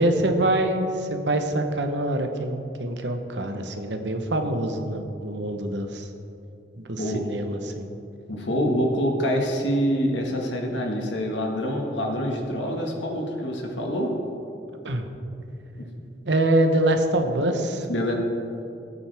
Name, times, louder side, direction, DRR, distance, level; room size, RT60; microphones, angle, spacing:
voice 1, 0.0-6.0 6.8-7.9 14.8-15.1 16.3-17.9, right 1 dB, 75° right, 6 dB, 1.1 m, -25 dB
voice 2, 8.3-14.1 15.8-15.9 17.9-18.1, equal, 80° left, 1 dB, 1.8 m, -26 dB
19.0 x 8.7 x 3.5 m, 2.8 s
head